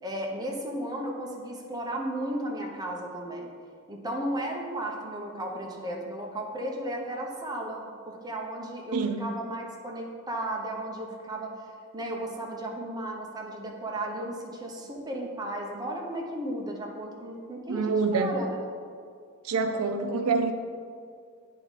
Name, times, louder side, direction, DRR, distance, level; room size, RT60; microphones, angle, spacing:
voice 1, 0.0-3.5 3.9-11.5 11.9-18.5, right 1 dB, 20° right, -1 dB, 0.7 m, -34 dB
voice 2, 8.9-9.3 17.7-18.4 19.4-20.5, right 4 dB, 90° right, 7 dB, 0.5 m, -26 dB
8.9 x 3.5 x 4.0 m, 2.2 s
head